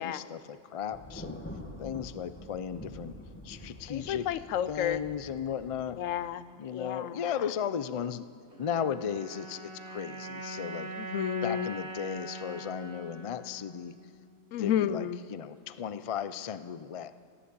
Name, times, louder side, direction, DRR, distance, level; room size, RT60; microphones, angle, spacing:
voice 1, 0.0-1.4 1.8-3.1 3.4-4.3 4.7-6.0 6.6-8.3 8.6-10.9 11.4-13.9 14.6-17.1, left 8 dB, 60° left, 13 dB, 0.3 m, -35 dB
Thunder, 0.9-6.3, left 1 dB, 10° left, 1.0 m, -46 dB
voice 2, 3.9-5.0 6.0-7.5 11.0-11.7 14.5-15.2, left 10 dB, 85° left, 14 dB, 1.0 m, -32 dB
sound 1, 8.5-14.9, right 2 dB, 55° right, 2.7 m, -43 dB
16.5 x 10.5 x 8.4 m, 2.2 s
omnidirectional pair, 1.3 m